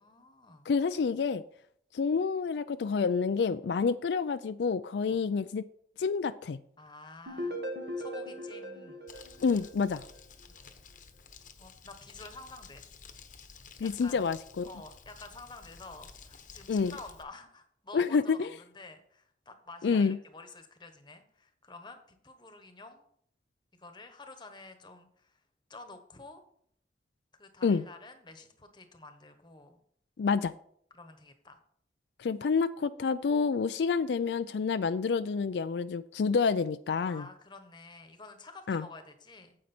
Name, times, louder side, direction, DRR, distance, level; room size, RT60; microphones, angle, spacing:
voice 1, 0.0-0.7 5.1-5.2 6.8-7.6 8.0-9.0 11.6-12.8 13.8-14.2 14.6-23.0 23.8-25.3 25.7-26.4 27.4-29.8 30.9-31.6 37.0-39.6, left 3 dB, 25° left, 7 dB, 1.2 m, -50 dB
voice 2, 0.7-1.4 1.9-5.6 6.0-6.6 9.4-10.0 13.8-14.7 16.7-16.9 17.9-18.5 19.8-20.2 27.6-27.8 30.2-30.5 32.2-37.3 38.7-38.9, left 5 dB, 80° left, 12 dB, 0.4 m, -28 dB
sound 1, 7.3-10.2, equal, 65° right, 2.0 m, -39 dB
Crumpling crinkling, 9.1-17.2, left 5 dB, 45° left, 1.0 m, -52 dB
9.3 x 7.6 x 4.4 m, 0.64 s
head